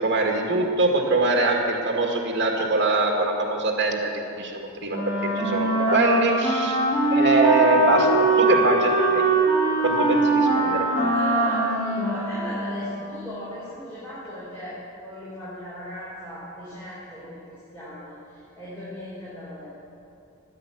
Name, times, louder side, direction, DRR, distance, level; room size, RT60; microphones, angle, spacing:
voice 1, 0.0-6.8 7.1-9.2 9.8-11.1, right 2 dB, 55° right, 1 dB, 2.0 m, -23 dB
Wind instrument woodwind instrument, 4.9-13.1, right 2 dB, 30° left, 4.6 m, -22 dB
voice 2, 10.6-19.7, equal, 10° left, -11 dB, 4.6 m, -37 dB
15.0 x 10.5 x 8.4 m, 2.7 s
head